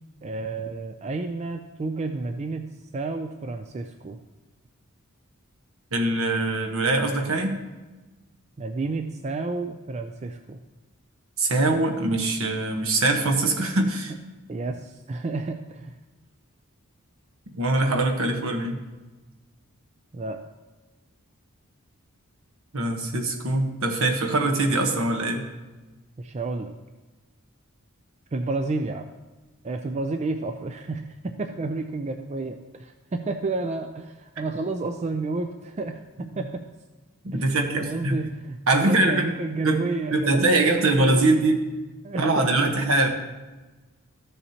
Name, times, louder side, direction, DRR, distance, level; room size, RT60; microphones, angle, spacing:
voice 1, 0.2-2.7 2.9-4.2 8.6-10.6 14.5-15.9 20.1-20.4 26.2-26.8 28.3-29.1 29.6-36.6 37.3-37.5 37.8-41.4 42.0-42.5, right 3 dB, 30° right, 6 dB, 0.4 m, -31 dB
voice 2, 5.9-7.6 11.4-14.1 17.5-18.8 22.7-25.4 36.3-36.4 37.2-38.2 38.7-39.3 39.6-39.8 40.1-41.6 42.2-43.1, right 2 dB, 70° right, 3 dB, 1.2 m, -23 dB
13.5 x 7.0 x 2.9 m, 1.2 s
head